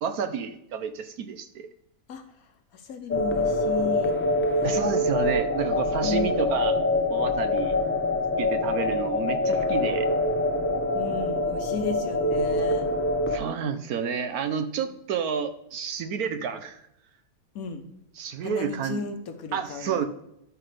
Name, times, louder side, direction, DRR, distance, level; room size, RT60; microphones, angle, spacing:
voice 1, 0.0-1.7 4.6-6.7 7.1-7.8 8.4-10.1 13.3-16.8 18.2-19.0 19.5-20.1, right 7 dB, 70° right, 10 dB, 1.0 m, -30 dB
voice 2, 2.7-4.1 4.6-5.0 6.0-6.4 10.9-12.9 14.8-15.0 17.5-17.8 18.4-20.1, left 4 dB, 60° left, 7 dB, 1.2 m, -34 dB
sound 1, 3.1-13.4, left 2 dB, 15° left, 0.4 m, -25 dB
12.0 x 5.8 x 3.3 m, 0.79 s
omnidirectional pair, 1.8 m